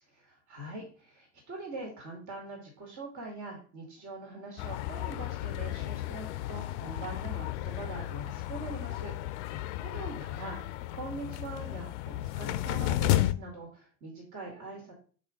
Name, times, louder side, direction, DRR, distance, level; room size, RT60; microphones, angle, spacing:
voice 1, 0.1-9.1 9.5-14.9, right 2 dB, 55° right, 0 dB, 2.1 m, -43 dB
sound 1, 4.6-13.3, left 14 dB, 75° left, 0.5 m, -33 dB
4.9 x 4.2 x 5.0 m, 0.41 s
hypercardioid pair, 55°, 35 cm